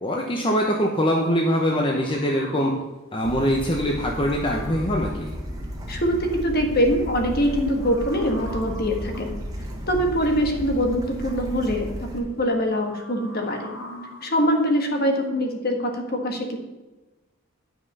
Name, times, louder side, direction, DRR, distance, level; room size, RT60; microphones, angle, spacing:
voice 1, 0.0-2.7 3.1-5.3, equal, 25° left, 0 dB, 0.8 m, -23 dB
sound 1, 1.8-5.1 7.2-9.4 10.8-11.4 11.9-15.3, left 1 dB, 60° left, 1.5 m, -42 dB
Bird / Stream, 3.2-12.2, equal, 15° right, 1.5 m, -34 dB
voice 2, 5.9-9.4 9.9-13.7 14.2-16.6, equal, 45° left, 3 dB, 1.5 m, -23 dB
10.0 x 6.0 x 5.4 m, 1.1 s
head